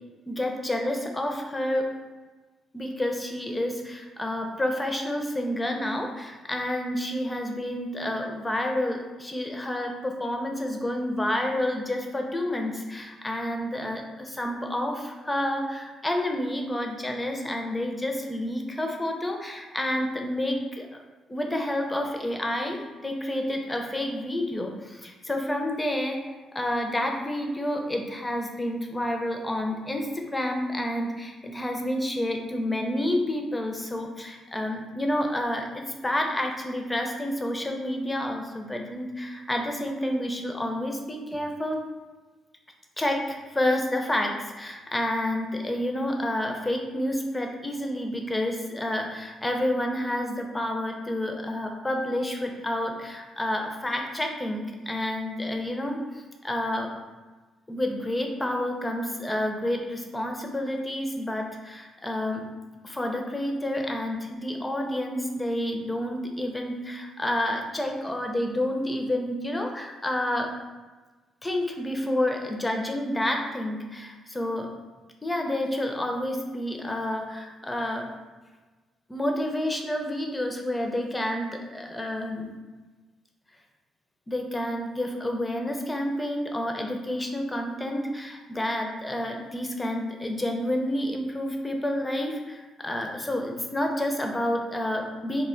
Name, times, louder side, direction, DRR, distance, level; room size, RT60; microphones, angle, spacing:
voice 1, 0.3-1.9 2.7-20.9 21.3-26.2 26.5-41.8 43.0-56.9 57.7-62.5 62.8-70.5 71.4-74.7 75.2-78.1 79.1-82.5 84.3-95.4, left 1 dB, 15° left, 2 dB, 0.4 m, -29 dB
2.1 x 2.1 x 3.7 m, 1.3 s
cardioid pair, 90°, 0 cm